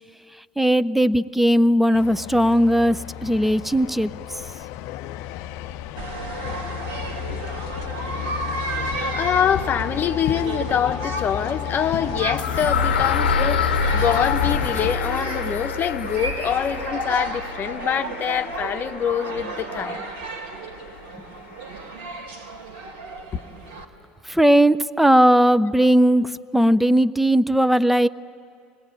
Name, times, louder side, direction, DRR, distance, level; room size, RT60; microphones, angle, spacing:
voice 1, 0.6-4.1 24.2-28.1, equal, 5° right, 0.7 m, -18 dB
sound 1, 1.9-15.0, left 12 dB, 65° left, 0.6 m, -32 dB
sound 2, 6.0-23.8, right 2 dB, 80° right, 3.3 m, -33 dB
voice 2, 9.1-20.0 23.3-23.4, left 8 dB, 40° left, 0.9 m, -25 dB
sound 3, 12.4-20.3, left 5 dB, 90° left, 0.9 m, -27 dB
29.0 x 20.0 x 9.0 m
hypercardioid pair, 75°, 5 cm